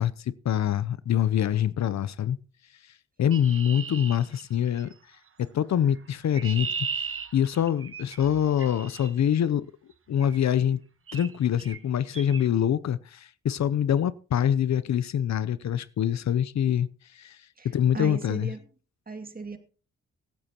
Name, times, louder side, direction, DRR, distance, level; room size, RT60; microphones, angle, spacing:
voice 1, 0.0-2.4 3.2-4.9 5.4-9.7 10.1-10.8 11.1-16.9 17.1-17.4 17.6-18.5, left 9 dB, 65° left, 0.7 m, -25 dB
Chirp tweet, 3.3-4.9 6.0-9.1 10.2-10.5 11.1-11.3 11.6-11.8 12.1-12.4, right 5 dB, 45° right, 1.3 m, -37 dB
voice 2, 17.6-18.6 19.1-19.6, right 4 dB, 30° right, 2.4 m, -37 dB
23.0 x 8.9 x 2.9 m
cardioid pair, 65°, 29 cm